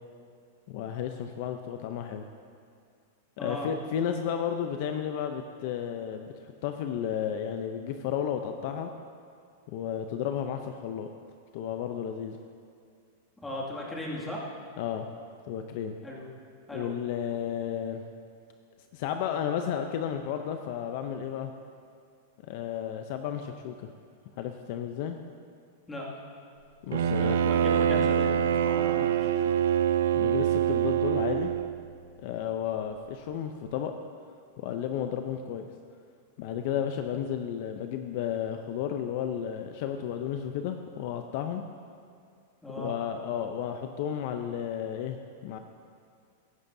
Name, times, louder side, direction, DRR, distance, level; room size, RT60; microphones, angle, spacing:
voice 1, 0.7-2.2 3.4-8.9 9.7-11.1 11.5-12.4 14.8-15.1 15.5-16.0 16.7-18.0 18.9-21.5 22.4-23.9 24.4-25.2 26.8-27.4 30.1-31.5 32.2-33.9 34.6-35.6 36.4-41.6 42.8-45.6, left 9 dB, 55° left, 6 dB, 0.6 m, -33 dB
voice 2, 3.4-3.7 13.4-14.4 16.0-16.3 16.7-16.9 25.9-26.1 27.1-29.4 42.6-42.9, left 1 dB, 10° left, -5 dB, 2.3 m, -37 dB
Bowed string instrument, 26.9-31.8, right 9 dB, 85° right, 0.5 m, -25 dB
16.0 x 12.0 x 2.7 m, 2.3 s
supercardioid pair, 145°, 0 cm